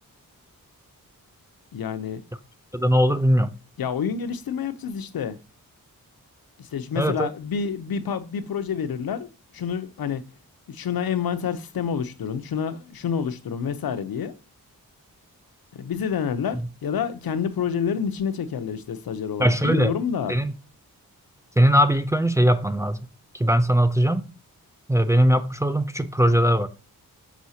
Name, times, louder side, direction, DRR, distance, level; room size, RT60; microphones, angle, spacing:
voice 1, 1.7-2.2 3.8-5.4 6.6-9.3 9.5-10.2 10.7-14.3 15.7-20.3, left 7 dB, 80° left, 0.7 m, -28 dB
voice 2, 2.7-3.5 7.0-7.3 19.4-19.9 20.3-20.5 21.6-23.0 23.3-24.3 24.9-26.7, equal, 10° right, 0.4 m, -20 dB
6.1 x 5.6 x 2.7 m
wide cardioid pair, 90°, 36 cm